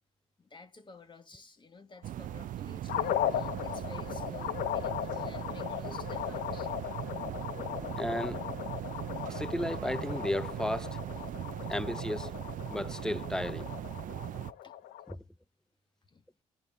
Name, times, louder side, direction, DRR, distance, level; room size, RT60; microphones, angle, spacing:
voice 1, 0.4-6.7 11.7-11.8 13.9-14.1 14.6-14.8 16.1-16.2, left 4 dB, 30° left, 1.8 m, -52 dB
sound 1, 2.0-14.5, right 12 dB, 55° right, 0.5 m, -39 dB
sound 2, 2.9-15.1, left 11 dB, 65° left, 0.7 m, -37 dB
voice 2, 7.2-8.6 9.3-10.9 11.7-12.3 12.7-13.7 15.1-15.2, left 1 dB, 5° left, 0.5 m, -34 dB
17.5 x 11.0 x 2.7 m
supercardioid pair, 65°, 16 cm